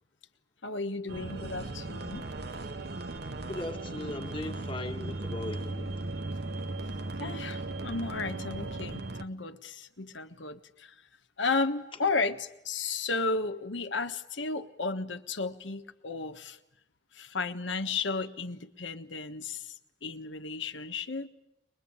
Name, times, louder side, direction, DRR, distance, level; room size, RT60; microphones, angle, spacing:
voice 1, 0.6-2.3 7.2-10.9 11.4-16.6 17.1-19.7 20.0-21.3, left 3 dB, 80° left, 1.3 m, -33 dB
sound 1, 1.1-9.2, right 2 dB, 60° right, 1.0 m, -37 dB
voice 2, 3.4-6.1, left 2 dB, 25° left, 1.6 m, -38 dB
22.5 x 22.0 x 8.7 m
head